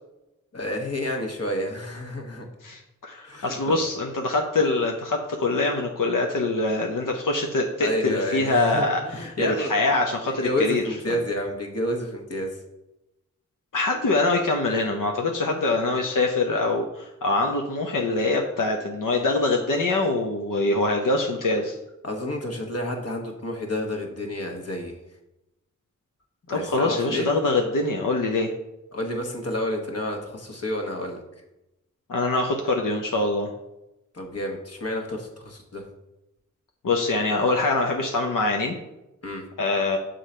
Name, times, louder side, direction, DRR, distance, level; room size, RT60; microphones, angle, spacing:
voice 1, 0.5-2.5 3.2-3.8 7.8-9.7 10.2-12.5 22.0-24.9 26.5-27.3 28.9-31.2 34.1-35.8 39.2-39.4, left 1 dB, 50° left, 2 dB, 1.2 m, -29 dB
voice 2, 2.6-10.8 13.7-21.8 26.5-28.5 32.1-33.5 36.8-38.8 39.6-40.0, left 2 dB, 85° left, 1 dB, 0.6 m, -24 dB
6.5 x 3.9 x 4.3 m, 0.93 s
wide cardioid pair, 50°, 31 cm